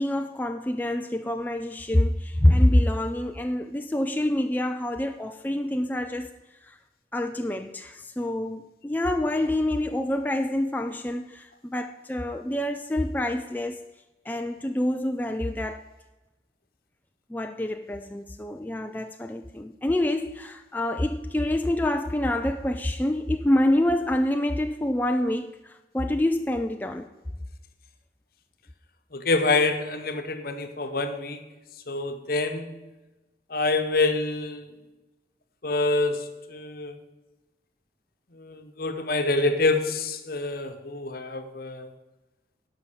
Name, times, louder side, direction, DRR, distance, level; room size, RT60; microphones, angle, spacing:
voice 1, 0.0-6.3 6.7-6.8 7.1-13.9 14.3-15.8 17.3-27.1, left 1 dB, 10° left, 5 dB, 0.3 m, -26 dB
voice 2, 29.1-31.4 31.9-32.7 33.5-34.7 35.6-37.0 38.4-41.9, left 3 dB, 55° left, 8 dB, 1.0 m, -26 dB
11.0 x 5.7 x 6.9 m, 1.1 s
head